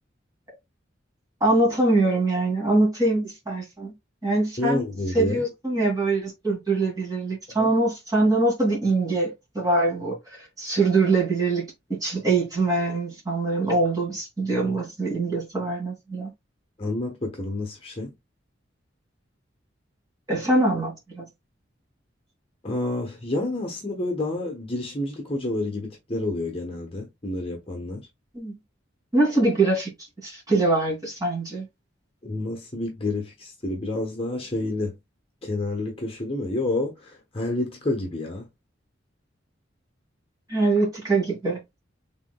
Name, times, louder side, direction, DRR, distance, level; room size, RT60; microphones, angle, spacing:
voice 1, 1.4-3.9 4.2-4.8 5.1-16.3 20.3-21.3 28.3-28.5 29.1-29.9 30.2-31.7 40.5-41.6, right 2 dB, 20° right, 2.6 m, -23 dB
voice 2, 4.6-5.4 7.5-7.7 16.8-18.1 22.6-28.1 32.2-35.0 35.4-38.5, left 2 dB, 30° left, 1.0 m, -29 dB
5.9 x 3.8 x 2.3 m
head